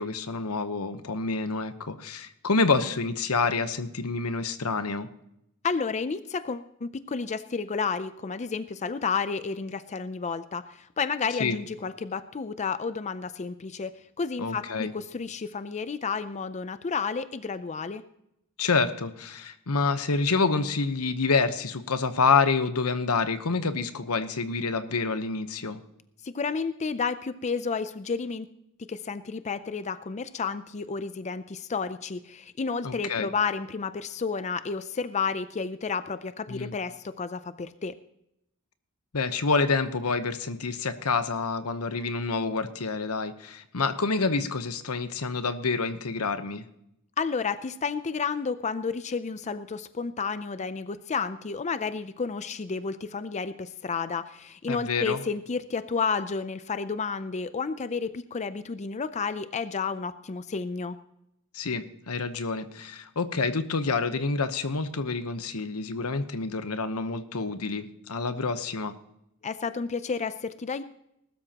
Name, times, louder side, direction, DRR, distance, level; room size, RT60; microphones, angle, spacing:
voice 1, 0.0-5.1 11.4-11.6 14.4-14.9 18.6-25.8 32.8-33.3 36.5-36.7 39.1-46.6 54.7-55.2 61.5-68.9, left 4 dB, 90° left, 11 dB, 1.0 m, -27 dB
voice 2, 5.6-18.0 26.2-28.5 28.8-37.9 47.2-61.0 69.4-70.8, left 5 dB, 30° left, 13 dB, 0.5 m, -31 dB
19.5 x 13.0 x 2.9 m, 0.79 s
head